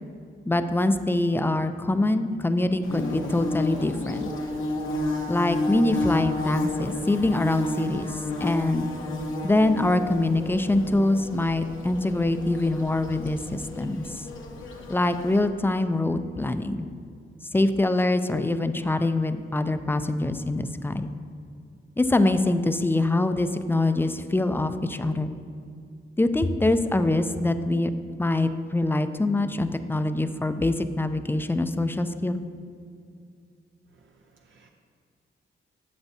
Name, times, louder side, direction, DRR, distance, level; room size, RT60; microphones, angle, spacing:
voice 1, 0.5-4.3 5.3-8.9 9.4-14.2 14.9-16.9 17.5-21.1 22.0-25.3 26.2-27.9 28.2-32.4, left 2 dB, 10° left, 9 dB, 0.4 m, -24 dB
Bird / Buzz, 2.8-15.5, left 2 dB, 75° left, 0.9 m, -32 dB
voice 2, 33.9-34.7, right 4 dB, 70° right, 2 dB, 0.6 m, -60 dB
11.5 x 7.0 x 2.7 m, 2.3 s
cardioid pair, 85°, 21 cm